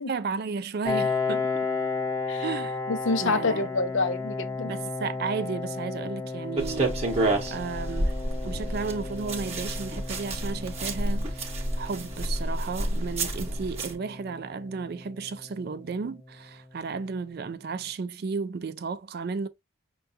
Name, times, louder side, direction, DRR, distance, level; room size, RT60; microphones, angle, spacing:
voice 1, 0.1-1.5 2.4-2.8 3.2-3.7 4.6-8.1 8.4-19.5, right 5 dB, 45° right, 0.3 m, -33 dB
Piano, 0.8-16.2, left 4 dB, 15° left, 0.7 m, -34 dB
voice 2, 2.9-4.7, left 3 dB, 60° left, 0.6 m, -27 dB
sound 1, 6.6-13.9, right 2 dB, 30° right, 0.8 m, -29 dB
5.7 x 2.3 x 2.6 m
head